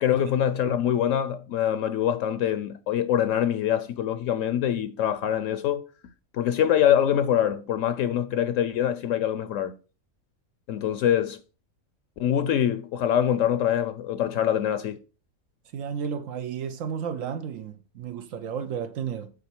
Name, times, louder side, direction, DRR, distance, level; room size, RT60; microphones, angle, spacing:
voice 1, 0.0-5.8 6.3-9.8 10.7-11.4 12.2-15.0, left 10 dB, 75° left, 0.9 m, -24 dB
voice 2, 15.7-19.3, right 7 dB, 75° right, 1.0 m, -32 dB
8.9 x 3.9 x 4.4 m
omnidirectional pair, 1.4 m